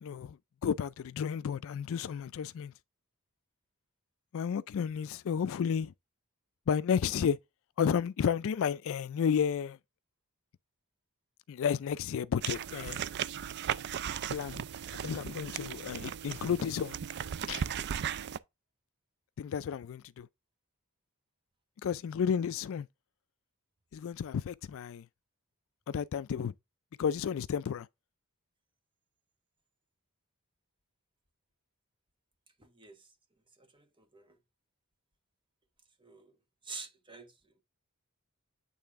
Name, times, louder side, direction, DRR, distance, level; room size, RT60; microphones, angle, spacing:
voice 1, 0.0-2.7 4.3-5.9 6.7-7.4 7.8-9.8 11.5-13.0 14.3-14.7 15.0-17.0 17.5-17.6 19.4-20.3 21.8-22.9 23.9-25.1 25.9-26.5 27.0-27.9, left 7 dB, 65° left, 0.3 m, -32 dB
sound 1, 12.4-18.4, right 9 dB, 50° right, 0.4 m, -37 dB
voice 2, 32.6-33.1 33.6-34.4 36.0-36.3 36.6-37.6, right 4 dB, 20° right, 1.2 m, -48 dB
8.6 x 3.4 x 3.5 m
head